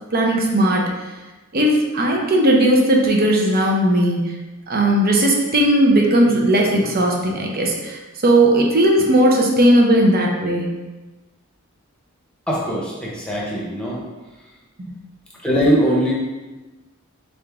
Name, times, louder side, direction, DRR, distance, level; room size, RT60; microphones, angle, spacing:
voice 1, 0.1-0.8 1.5-4.3 4.7-10.7 14.8-14.9, right 1 dB, 45° right, 0 dB, 0.7 m, -17 dB
voice 2, 12.5-14.0 15.4-16.1, equal, 5° left, -5 dB, 0.9 m, -20 dB
3.8 x 3.6 x 3.5 m, 1.2 s
head